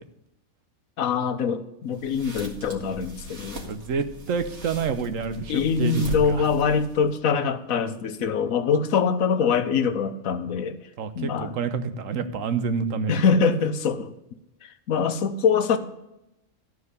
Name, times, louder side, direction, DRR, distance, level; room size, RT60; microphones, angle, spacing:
voice 1, 1.0-3.7 5.5-10.8 11.1-11.6 13.1-14.1 14.6-15.8, left 6 dB, 85° left, 1.3 m, -24 dB
sound 1, 1.9-7.2, left 2 dB, 55° right, 2.3 m, -39 dB
voice 2, 3.7-6.5 11.0-13.2, right 5 dB, 75° right, 1.2 m, -28 dB
13.0 x 4.8 x 8.1 m
omnidirectional pair, 1.4 m